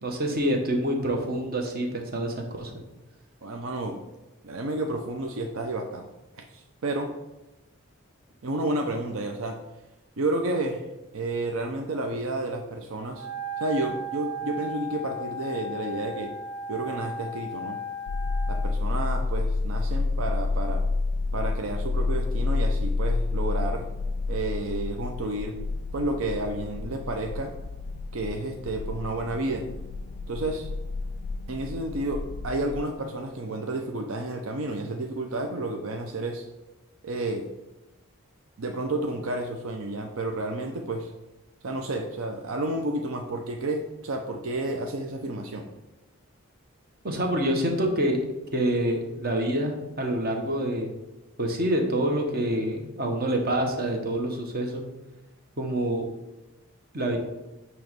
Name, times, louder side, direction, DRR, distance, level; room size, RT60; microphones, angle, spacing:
voice 1, 0.0-2.7 47.0-48.2 48.5-50.9 51.4-54.8 55.6-56.1 56.9-57.2, right 1 dB, 45° right, 2 dB, 1.1 m, -26 dB
voice 2, 3.4-4.0 4.4-6.1 6.3-7.1 8.4-9.6 10.2-10.9 11.1-13.3 13.6-16.3 16.7-17.8 18.5-20.8 21.3-23.9 24.3-25.6 25.9-27.5 28.1-29.6 30.3-30.7 31.5-36.5 37.0-37.5 38.6-41.1 41.6-45.7, right 2 dB, 70° right, 3 dB, 0.6 m, -31 dB
Wind instrument woodwind instrument, 13.1-18.7, right 1 dB, 15° right, 1.4 m, -35 dB
sound 1, 18.1-32.8, left 3 dB, 55° left, 0.3 m, -29 dB
9.1 x 3.1 x 5.2 m, 1.0 s
head